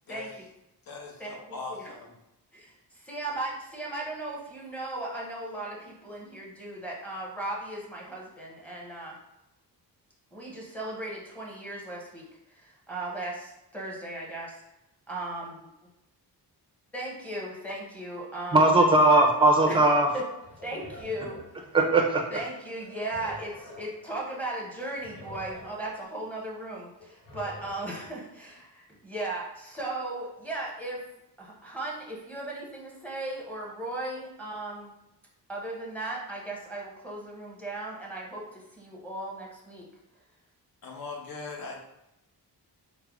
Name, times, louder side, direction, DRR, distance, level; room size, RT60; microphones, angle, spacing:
voice 1, 0.9-2.1 40.8-41.8, left 3 dB, 60° left, 1 dB, 0.8 m, -40 dB
voice 2, 2.5-9.2 10.3-14.6 15.1-15.4 16.9-18.7 19.7-19.8 20.1-20.2 20.6-21.7 22.3-31.0 31.4-34.9 35.5-39.8, right 2 dB, 5° left, -4 dB, 0.8 m, -37 dB
voice 3, 18.5-20.1 21.7-22.2, right 2 dB, 15° right, 1 dB, 0.5 m, -19 dB
sound 1, 20.4-22.1 22.6-24.1 24.4-24.5 24.7-26.1 26.5-28.1, left 1 dB, 80° left, 1.1 m, -47 dB
3.4 x 2.1 x 3.4 m, 0.87 s
wide cardioid pair, 145°, 40 cm